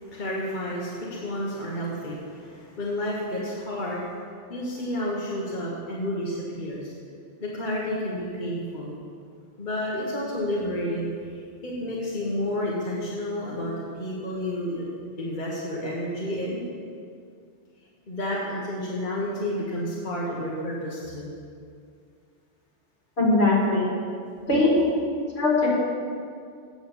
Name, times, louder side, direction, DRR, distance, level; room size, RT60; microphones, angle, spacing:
voice 1, 0.0-4.1 4.5-6.9 7.4-8.9 9.6-11.1 11.3-14.9 15.2-16.6 18.1-21.3, left 1 dB, 45° left, -5 dB, 1.4 m, -30 dB
voice 2, 23.2-23.9 24.5-24.9 25.3-25.7, left 2 dB, 65° left, -4 dB, 2.7 m, -20 dB
8.8 x 7.0 x 7.2 m, 2.3 s
omnidirectional pair, 1.2 m